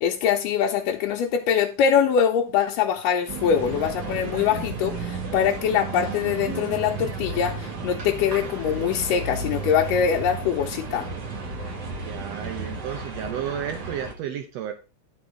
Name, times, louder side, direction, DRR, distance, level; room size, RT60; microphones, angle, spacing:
voice 1, 0.0-11.1, left 8 dB, 80° left, 2.3 m, -23 dB
sound 1, 3.3-14.1, right 4 dB, 50° right, 1.2 m, -33 dB
voice 2, 12.0-14.7, right 9 dB, 80° right, 1.5 m, -32 dB
12.0 x 4.3 x 4.9 m
omnidirectional pair, 4.0 m